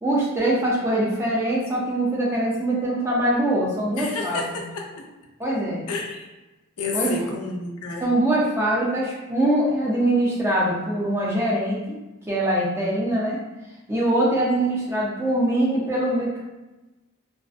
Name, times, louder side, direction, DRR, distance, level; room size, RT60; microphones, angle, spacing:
voice 1, 0.0-4.4 5.4-5.8 6.9-7.2 8.0-12.0 12.3-13.4 13.9-16.4, right 1 dB, 10° right, -5 dB, 0.4 m, -23 dB
voice 2, 4.0-5.1 5.9-6.3 6.8-8.1, left 4 dB, 85° left, 0 dB, 0.5 m, -30 dB
2.4 x 2.1 x 2.4 m, 1.1 s
head